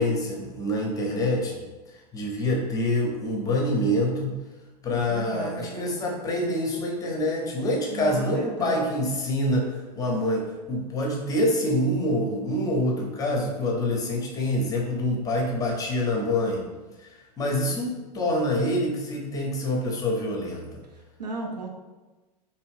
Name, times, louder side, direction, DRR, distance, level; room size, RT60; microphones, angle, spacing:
voice 1, 0.0-1.6 2.1-4.3 4.8-9.7 9.9-16.6 17.0-20.8, left 1 dB, 15° left, -1 dB, 0.6 m, -26 dB
voice 2, 5.1-6.0 7.9-8.8 21.2-21.7, right 3 dB, 75° right, 1 dB, 0.6 m, -34 dB
2.7 x 2.4 x 3.1 m, 1.2 s
figure-of-eight pair, 95°, 21 cm